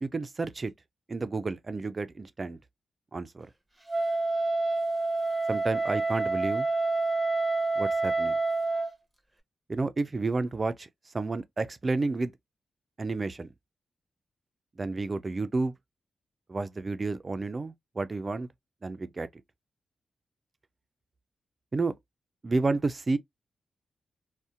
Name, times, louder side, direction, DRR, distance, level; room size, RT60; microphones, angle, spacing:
voice 1, 0.0-0.7 1.1-2.6 3.1-3.5 5.5-6.7 7.8-8.3 9.7-10.9 11.1-12.3 13.0-13.5 14.8-15.7 16.5-18.5 18.8-19.3 21.7-21.9 22.4-23.2, right 3 dB, 40° right, 0.3 m, -30 dB
Wind instrument woodwind instrument, 3.9-8.9, right 3 dB, 10° right, 0.7 m, -28 dB
2.6 x 2.1 x 2.4 m
supercardioid pair, 40°, 0 cm